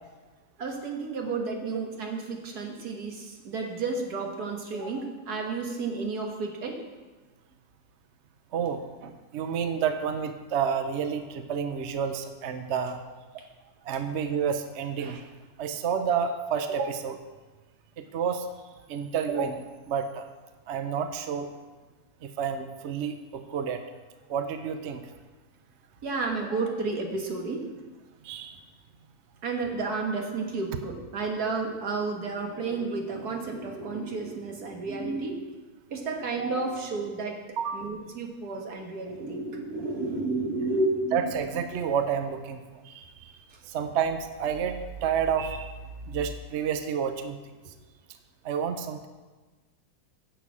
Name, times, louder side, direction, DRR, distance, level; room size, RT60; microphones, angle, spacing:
voice 1, 0.6-6.8 26.0-27.7 29.4-35.4 35.9-37.4 37.7-41.3, right 3 dB, 85° right, 2 dB, 2.0 m, -31 dB
voice 2, 8.5-13.0 13.3-13.4 13.8-15.3 15.6-17.2 18.0-18.5 18.9-20.3 20.7-21.5 22.2-23.8 24.3-25.0 28.2-28.6 37.6-37.8 41.1-43.3 43.6-45.7 46.1-47.4 48.4-49.1, right 7 dB, 55° right, 8 dB, 0.9 m, -30 dB
10.5 x 7.0 x 7.3 m, 1.3 s
omnidirectional pair, 1.6 m